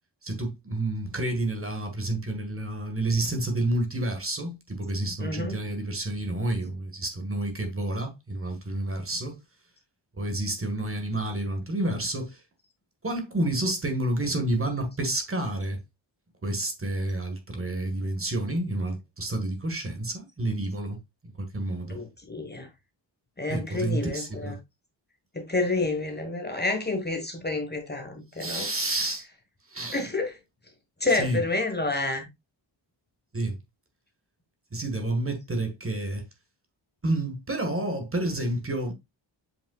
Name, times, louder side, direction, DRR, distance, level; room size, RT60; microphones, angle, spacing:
voice 1, 0.2-9.4 10.2-12.4 13.0-15.8 16.4-21.0 21.4-22.0 23.5-24.6 28.4-29.2 29.7-30.0 31.2-31.4 33.3-33.6 34.7-36.2 37.0-38.9, right 1 dB, 30° right, 1.6 m, -29 dB
voice 2, 5.2-5.6 21.9-22.7 23.4-24.5 25.3-28.7 29.9-30.3 31.0-32.3, left 2 dB, 20° left, 1.4 m, -29 dB
7.9 x 5.3 x 2.3 m
wide cardioid pair, 160°, 46 cm